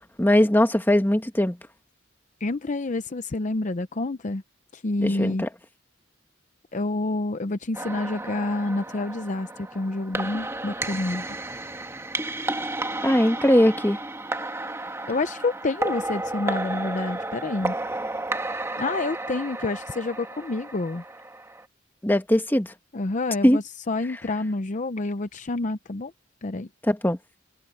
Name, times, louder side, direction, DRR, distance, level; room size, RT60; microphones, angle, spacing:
voice 1, 0.2-1.6 5.0-5.5 13.0-14.0 22.0-22.7 23.4-23.6 26.8-27.2, left 1 dB, 10° left, 1.5 m, -20 dB
voice 2, 2.4-4.4 4.7-5.4 6.7-11.2 15.1-17.8 18.8-21.0 22.9-26.1 26.4-26.7, left 2 dB, 40° left, 0.7 m, -28 dB
sound 1, 7.7-21.6, right 2 dB, 15° right, 1.6 m, -32 dB
open air
head